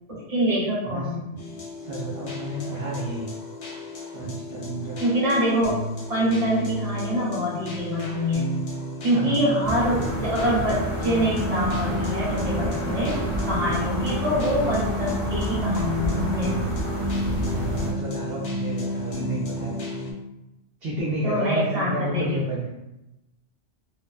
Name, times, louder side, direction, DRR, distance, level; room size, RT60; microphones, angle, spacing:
voice 1, 0.1-1.2 5.0-5.8 6.1-8.5 9.0-13.2 13.4-16.5 21.2-22.4, equal, 30° right, -8 dB, 1.0 m, -25 dB
voice 2, 1.3-3.3 4.1-5.0 9.1-9.5 17.4-19.8 20.8-22.7, right 1 dB, 65° right, -5 dB, 0.7 m, -31 dB
sound 1, 1.4-20.1, left 1 dB, 65° left, 0.3 m, -32 dB
sound 2, 9.6-17.9, right 1 dB, 15° right, 0.7 m, -29 dB
2.4 x 2.1 x 2.4 m, 0.94 s
omnidirectional pair, 1.2 m